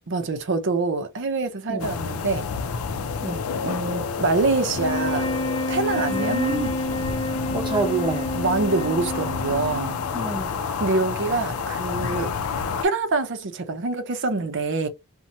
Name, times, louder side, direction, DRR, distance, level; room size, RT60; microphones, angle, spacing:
voice 1, 0.1-2.5 3.6-5.3 5.7-6.4 8.3-10.0 10.8-12.3 12.8-14.9, right 3 dB, 60° right, 0.6 m, -25 dB
sound 1, 1.8-12.8, left 5 dB, 90° left, 0.5 m, -29 dB
sound 2, 4.7-10.2, left 1 dB, 30° left, 0.5 m, -29 dB
voice 2, 6.1-6.7 7.5-8.3 10.1-10.5, right 2 dB, 25° right, 0.9 m, -27 dB
2.7 x 2.2 x 2.9 m
head